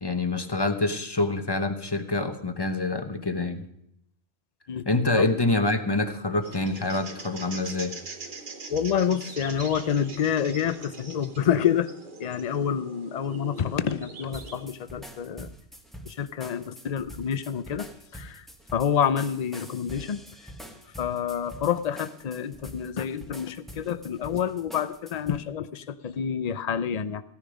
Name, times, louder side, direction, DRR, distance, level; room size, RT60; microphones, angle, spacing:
voice 1, 0.0-3.7 4.9-7.9, left 2 dB, 20° left, 7 dB, 1.0 m, -26 dB
sound 1, 6.4-14.7, right 3 dB, 50° right, 1.3 m, -42 dB
voice 2, 8.7-11.9 12.2-15.5 16.1-17.9 18.1-18.5 18.7-20.2 21.0-27.2, left 8 dB, 45° left, 13 dB, 0.6 m, -28 dB
sound 2, 14.3-25.4, equal, ahead, 1.1 m, -45 dB
16.0 x 10.5 x 5.1 m, 0.75 s
omnidirectional pair, 1.2 m